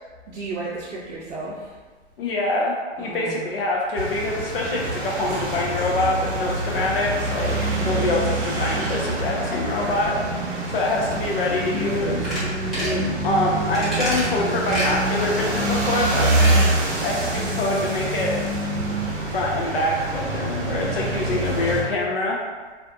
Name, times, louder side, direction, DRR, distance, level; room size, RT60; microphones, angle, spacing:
voice 1, 0.3-1.8 3.0-3.5 6.4-6.9 7.7-8.0 20.9-21.7, right 3 dB, 90° right, -6 dB, 0.6 m, -35 dB
voice 2, 2.2-10.2 10.7-12.4 12.7-16.4 17.0-18.5 19.3-22.4, left 2 dB, 55° left, -2 dB, 0.5 m, -25 dB
sound 1, 4.0-21.8, right 2 dB, 60° right, 0.8 m, -25 dB
sound 2, 12.2-12.4 12.7-13.0 13.7-14.3 14.7-14.9 16.1-16.7 17.0-17.1, equal, ahead, 0.8 m, -27 dB
2.5 x 2.3 x 2.4 m, 1.4 s
hypercardioid pair, 130°, 35 cm